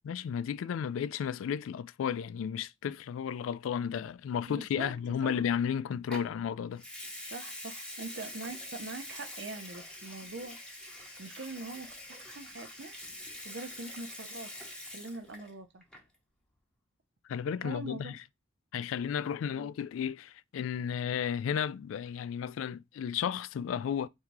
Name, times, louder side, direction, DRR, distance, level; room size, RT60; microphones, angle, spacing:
voice 1, 0.0-6.8 17.3-18.2 18.7-24.1, left 8 dB, 85° left, 0.3 m, -33 dB
voice 2, 4.5-4.9 5.2-5.4 7.3-10.6 11.2-12.9 13.4-14.5 14.9-15.8 17.6-18.2 19.5-19.7, right 3 dB, 65° right, 0.7 m, -43 dB
Water tap faucet / Sink (filling or washing) / Liquid, 6.1-6.3 6.8-15.5 15.8-16.2, left 1 dB, 5° left, 0.8 m, -45 dB
3.6 x 2.7 x 4.5 m
head